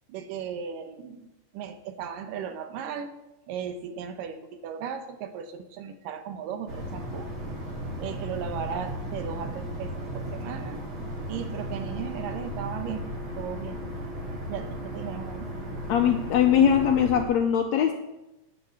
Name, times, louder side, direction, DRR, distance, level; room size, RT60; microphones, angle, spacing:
voice 1, 0.1-1.3 1.5-3.2 3.5-7.3 8.0-10.8 11.3-13.1 13.4-13.8 14.5-15.5, right 7 dB, 80° right, 9 dB, 2.6 m, -36 dB
sound 1, 6.7-17.3, equal, 40° right, 2.7 m, -35 dB
voice 2, 15.9-17.9, left 9 dB, 75° left, 4 dB, 1.6 m, -21 dB
10.5 x 5.4 x 8.5 m, 0.94 s
omnidirectional pair, 3.8 m